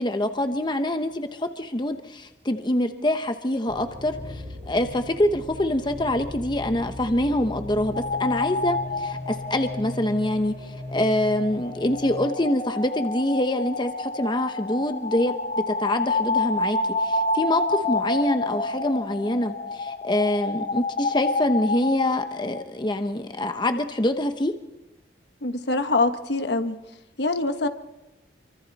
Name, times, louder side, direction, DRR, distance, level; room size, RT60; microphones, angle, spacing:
voice 1, 0.0-24.5, left 1 dB, 25° left, 7 dB, 1.0 m, -25 dB
sound 1, 3.7-12.2, left 2 dB, 45° right, 5.9 m, -38 dB
sound 2, 7.9-22.6, left 2 dB, 50° left, 2.9 m, -29 dB
voice 2, 25.4-26.8 27.2-27.7, left 2 dB, 70° left, 8 dB, 1.3 m, -24 dB
28.5 x 24.5 x 4.2 m, 1.0 s
head